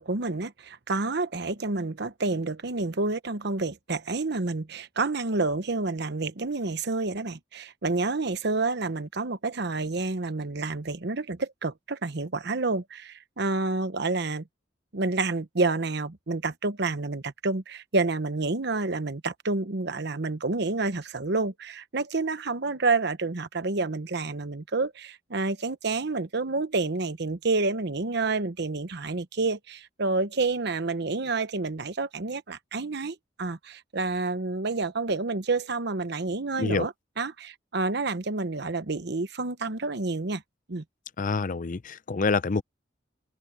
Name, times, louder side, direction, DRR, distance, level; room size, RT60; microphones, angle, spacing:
voice 1, 0.0-14.4 14.9-40.4 40.7-40.8, right 3 dB, 65° right, 1.0 m, -29 dB
voice 2, 41.2-42.6, left 4 dB, 45° left, 0.6 m, -26 dB
open air
head